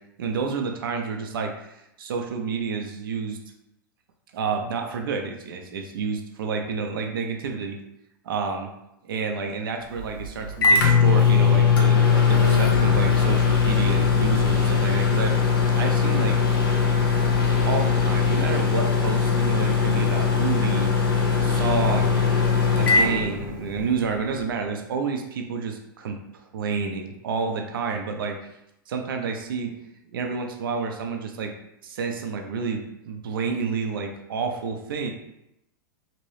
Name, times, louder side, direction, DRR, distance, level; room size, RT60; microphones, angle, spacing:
voice 1, 0.2-3.4 4.3-7.8 8.2-8.7 9.0-15.4 15.8-16.4 17.6-20.9 21.3-22.2 22.7-28.4 28.9-29.8 30.1-31.5 31.8-35.1, right 5 dB, 80° right, 4 dB, 0.5 m, -29 dB
Microwave oven, 9.9-24.0, left 5 dB, 85° left, 0.8 m, -20 dB
2.9 x 2.6 x 3.2 m, 0.84 s
hypercardioid pair, 130°, 12 cm